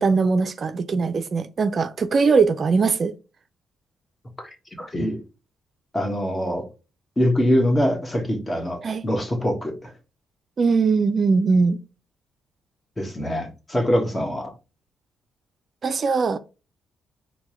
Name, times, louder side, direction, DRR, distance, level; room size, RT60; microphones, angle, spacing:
voice 1, 0.0-3.1 8.8-9.0 10.6-11.8 15.8-16.4, right 4 dB, 50° right, 0.4 m, -20 dB
voice 2, 4.4-5.2 5.9-6.7 7.2-9.9 13.0-14.5, equal, 20° left, 1.4 m, -24 dB
4.5 x 2.1 x 4.2 m
supercardioid pair, 65°, 0 cm